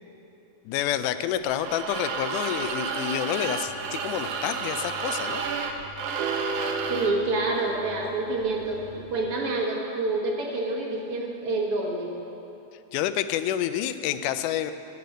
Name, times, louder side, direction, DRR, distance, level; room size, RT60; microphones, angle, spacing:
voice 1, 0.7-5.4 12.9-14.7, left 11 dB, 90° left, 12 dB, 2.1 m, -28 dB
sound 1, 1.5-7.2, right 5 dB, 70° right, 1.5 m, -31 dB
sound 2, 3.6-9.1, right 1 dB, 55° left, 4.4 m, -48 dB
sound 3, 6.2-8.5, right 3 dB, 90° right, 2.2 m, -34 dB
voice 2, 6.9-8.8 9.1-12.1, right 2 dB, 55° right, -1 dB, 1.9 m, -27 dB
11.5 x 6.9 x 8.9 m, 2.9 s
omnidirectional pair, 3.5 m